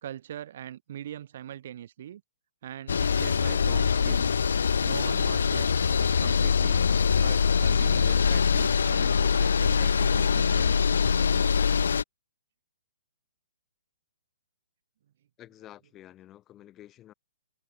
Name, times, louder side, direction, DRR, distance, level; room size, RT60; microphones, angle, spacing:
voice 1, 0.0-2.2 2.6-4.3 4.8-6.8 7.2-10.9, right 11 dB, 45° right, 0.9 m, -41 dB
sound 1, 2.9-12.0, left 6 dB, 60° left, 0.4 m, -23 dB
voice 2, 15.4-17.1, left 13 dB, 20° left, 3.3 m, -50 dB
figure-of-eight pair, 125°, 0 cm